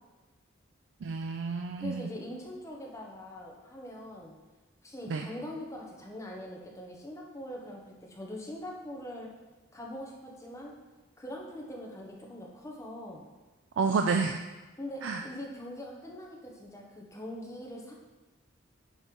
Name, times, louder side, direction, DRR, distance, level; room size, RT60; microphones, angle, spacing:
voice 1, 1.0-2.1 5.1-5.3 13.8-14.4 15.0-15.2, right 4 dB, 75° right, 4 dB, 0.4 m, -29 dB
voice 2, 1.8-4.3 4.8-9.3 9.7-10.7 11.2-13.3 14.8-17.9, left 1 dB, 15° left, -1 dB, 1.0 m, -42 dB
7.2 x 3.3 x 5.3 m, 1.2 s
head